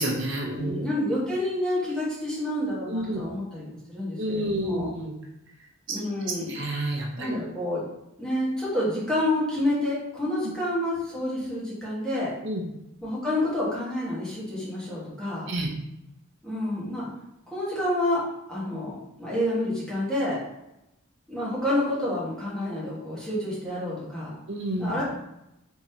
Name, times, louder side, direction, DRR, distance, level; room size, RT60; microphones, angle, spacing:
voice 1, 0.0-0.8 2.9-3.2 4.2-5.1 5.9-6.0 6.5-7.4 12.4-12.7 15.5-15.7 24.5-25.0, right 1 dB, 60° right, 0 dB, 0.8 m, -29 dB
voice 2, 0.5-4.9 5.9-6.6 7.2-7.8 8.2-12.3 13.0-15.5 16.4-17.1 17.5-18.2 18.5-20.4 21.3-24.4 24.8-25.0, left 1 dB, 5° left, -9 dB, 1.2 m, -28 dB
3.6 x 3.0 x 2.8 m, 0.87 s
head